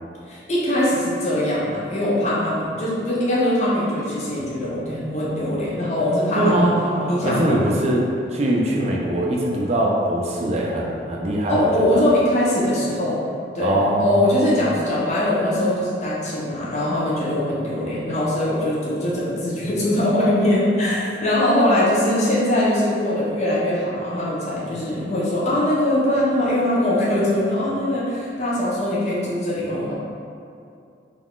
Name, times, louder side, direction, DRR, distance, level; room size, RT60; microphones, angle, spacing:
voice 1, 0.3-6.7 7.1-7.7 11.5-13.2 13.5-29.9, left 1 dB, 40° left, -6 dB, 0.6 m, -22 dB
voice 2, 6.3-12.1 13.6-14.6, right 1 dB, 35° right, -2 dB, 0.3 m, -22 dB
2.3 x 2.3 x 3.5 m, 2.5 s
head